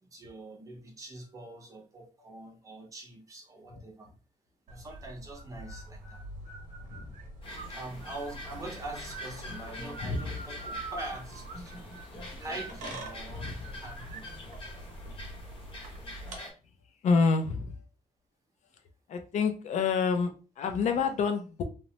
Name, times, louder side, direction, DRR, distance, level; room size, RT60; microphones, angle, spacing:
voice 1, 0.0-4.1 4.7-6.2 7.7-11.9 12.4-13.5 13.8-14.2, right 2 dB, 25° right, 1 dB, 0.6 m, -43 dB
sound 1, 4.7-16.4, right 1 dB, 65° right, 0.8 m, -44 dB
sound 2, 7.4-16.5, left 1 dB, 40° left, 0.8 m, -45 dB
voice 2, 17.0-17.8 19.1-21.6, left 5 dB, 60° left, 6 dB, 0.4 m, -28 dB
2.9 x 2.0 x 2.7 m, 0.35 s
wide cardioid pair, 175°, 14 cm